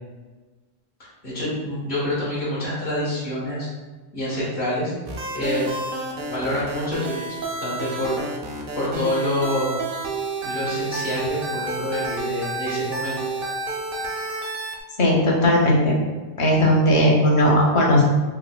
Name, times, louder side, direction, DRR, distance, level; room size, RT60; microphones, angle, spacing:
voice 1, 1.2-3.7 4.1-4.9 5.3-5.7 6.3-8.2 8.7-9.7 10.4-13.3, left 1 dB, 55° left, -9 dB, 1.5 m, -27 dB
sound 1, 5.1-14.8, right 2 dB, 60° right, 0.7 m, -30 dB
voice 2, 15.0-15.8 16.4-18.0, left 1 dB, 35° left, -2 dB, 0.6 m, -17 dB
5.1 x 2.0 x 2.2 m, 1.3 s
omnidirectional pair, 1.1 m